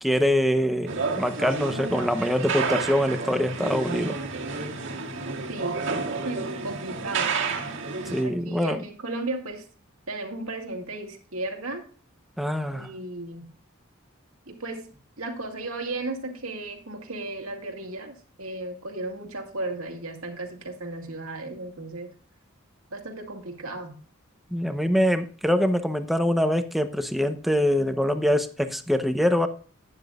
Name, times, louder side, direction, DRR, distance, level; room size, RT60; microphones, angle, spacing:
voice 1, 0.0-4.2 8.1-8.8 12.4-12.9 24.5-29.5, equal, ahead, 8 dB, 0.8 m, -24 dB
sound 1, 0.9-8.2, right 4 dB, 65° right, 2.0 m, -30 dB
voice 2, 6.2-7.3 8.2-9.6 10.1-11.8 12.7-13.5 14.5-14.8 15.2-22.1 22.9-24.0, right 2 dB, 80° right, 3 dB, 2.2 m, -35 dB
12.0 x 9.9 x 2.4 m, 0.41 s
head